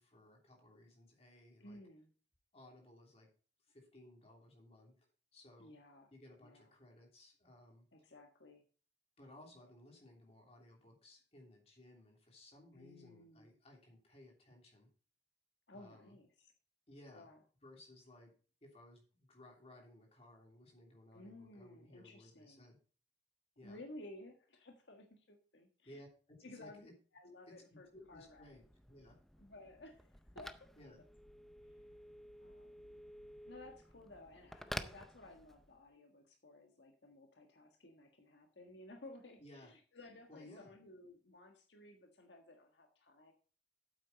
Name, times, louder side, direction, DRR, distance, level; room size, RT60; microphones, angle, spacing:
voice 1, 0.0-1.8 2.5-3.3 3.7-5.1 5.3-5.8 6.1-7.9 9.2-14.9 15.7-16.2 16.9-17.3 17.6-18.3 18.6-22.8 23.6-23.8 25.8-26.9 27.5-29.2 30.7-31.0 39.4-39.7 40.3-40.7, left 1 dB, 35° left, 0 dB, 3.0 m, -59 dB
voice 2, 1.6-2.1 5.6-6.1 6.4-6.7 7.9-8.6 12.7-13.5 15.7-16.5 17.1-17.4 21.1-22.7 23.6-26.0 26.4-26.9 27.1-28.6 29.4-30.7 32.4-33.0 33.5-43.3, left 2 dB, 80° left, 3 dB, 1.5 m, -56 dB
Telephone, 27.9-35.8, equal, ahead, 0.5 m, -51 dB
8.9 x 8.2 x 4.0 m, 0.39 s
head